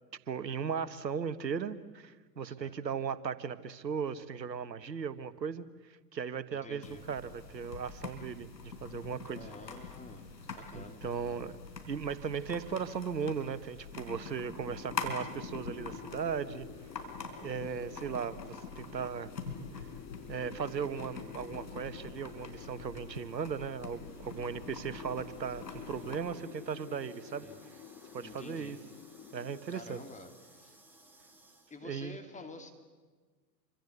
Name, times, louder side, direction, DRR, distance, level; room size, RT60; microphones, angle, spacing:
voice 1, 0.3-5.7 6.1-9.4 10.7-11.5 11.9-16.7 17.4-19.3 19.8-19.9 20.3-27.5 28.1-28.8 29.3-30.0 31.8-32.2, right 6 dB, 90° right, 14 dB, 1.5 m, -37 dB
voice 2, 2.4-2.9 6.5-7.1 9.4-10.3 10.6-11.5 27.4-27.6 28.2-28.8 29.7-30.8 31.7-32.7, left 3 dB, 15° left, 5 dB, 2.8 m, -50 dB
sound 1, 6.8-26.2, left 4 dB, 90° left, 4.4 m, -45 dB
sound 2, 13.7-29.6, left 9 dB, 30° left, 2.4 m, -50 dB
sound 3, 24.1-31.8, right 2 dB, 5° right, 5.5 m, -59 dB
28.5 x 25.5 x 8.1 m, 1.4 s
hypercardioid pair, 105°, 49 cm